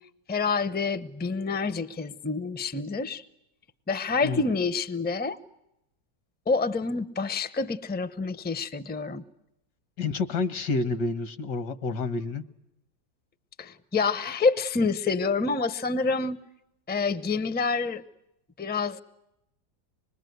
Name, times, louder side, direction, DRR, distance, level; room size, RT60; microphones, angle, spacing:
voice 1, 0.3-3.2 3.9-5.4 6.5-9.2 13.6-16.4 16.9-18.0 18.6-19.0, left 4 dB, 15° left, 15 dB, 0.3 m, -27 dB
voice 2, 10.0-12.4, left 3 dB, 75° left, 12 dB, 1.8 m, -29 dB
26.0 x 21.5 x 9.3 m, 0.86 s
omnidirectional pair, 1.9 m